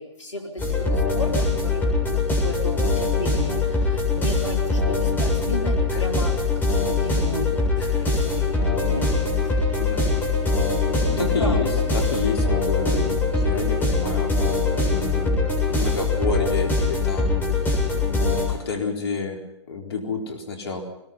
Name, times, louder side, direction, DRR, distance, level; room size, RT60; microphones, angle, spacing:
voice 1, 0.0-1.3 1.6-9.1 9.4-9.6 11.2-11.8, equal, 85° left, 2 dB, 4.2 m, -34 dB
sound 1, 0.6-18.5, left 3 dB, 10° left, 7.6 m, -22 dB
voice 2, 9.8-10.2 11.1-14.3 14.8-17.6 17.9-19.4 19.7-20.8, left 4 dB, 60° left, 3 dB, 4.3 m, -30 dB
22.5 x 21.5 x 5.7 m, 0.93 s
figure-of-eight pair, 125°, 15 cm